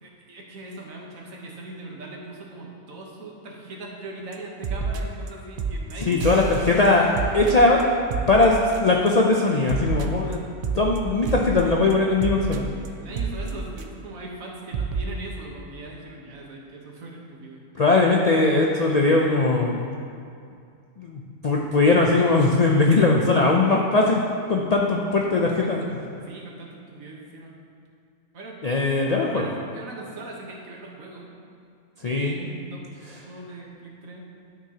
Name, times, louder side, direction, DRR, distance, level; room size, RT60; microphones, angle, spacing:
voice 1, 0.0-6.4 13.0-17.6 25.6-25.9 26.2-27.5 28.3-28.6 29.3-31.3 32.0-32.9 33.3-34.3, right 2 dB, 90° right, -1 dB, 1.5 m, -40 dB
sound 1, 4.3-4.4 4.6-5.3 5.6-9.1 9.4-14.2 14.4-14.5 14.7-15.0, right 4 dB, 65° right, 0.5 m, -30 dB
voice 2, 6.1-7.9 8.3-10.4 10.7-12.7 17.8-19.8 21.0-24.2 24.5-25.8 28.6-29.4 32.0-32.4, left 3 dB, 65° left, -1 dB, 0.4 m, -20 dB
12.0 x 6.0 x 2.9 m, 2.4 s
omnidirectional pair, 1.4 m